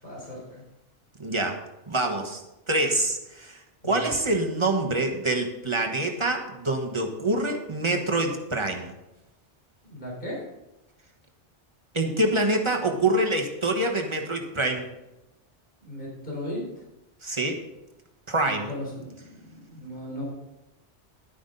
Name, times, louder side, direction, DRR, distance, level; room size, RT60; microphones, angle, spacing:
voice 1, 0.0-0.6 3.8-4.1 9.8-10.4 15.8-16.8 18.4-20.3, left 1 dB, 50° left, -5 dB, 4.3 m, -37 dB
voice 2, 1.2-1.6 1.9-2.4 2.7-8.9 11.9-14.9 17.2-17.6 18.3-18.7, right 2 dB, 25° right, 2 dB, 1.2 m, -26 dB
11.0 x 9.6 x 3.9 m, 0.96 s
omnidirectional pair, 1.1 m